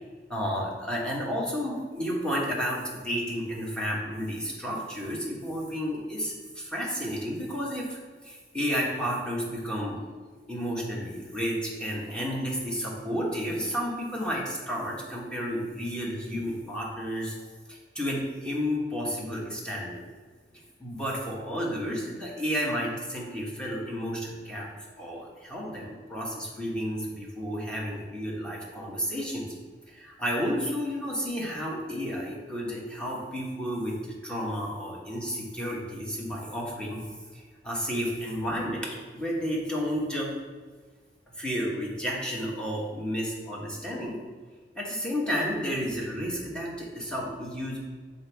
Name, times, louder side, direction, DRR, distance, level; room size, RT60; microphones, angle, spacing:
voice 1, 0.3-8.0 8.2-10.0 10.5-17.3 17.7-20.0 20.8-24.7 25.0-29.5 29.9-37.0 37.3-40.3 41.3-44.2 44.7-47.8, equal, 5° left, -4 dB, 1.2 m, -32 dB
7.8 x 4.0 x 3.5 m, 1.5 s
head